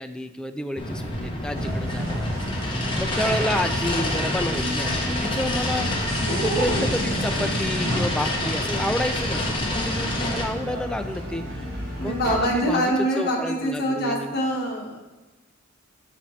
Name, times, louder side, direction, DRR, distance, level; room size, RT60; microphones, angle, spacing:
voice 1, 0.0-2.3 2.6-11.7 11.9-14.4, left 1 dB, 5° left, 7 dB, 0.3 m, -30 dB
sound 1, 0.8-10.4, left 1 dB, 25° left, 0.9 m, -27 dB
sound 2, 1.6-12.4, equal, 50° right, 1.6 m, -31 dB
voice 2, 12.0-15.0, equal, 50° left, -1 dB, 1.3 m, -24 dB
7.2 x 4.1 x 4.5 m, 1.2 s
head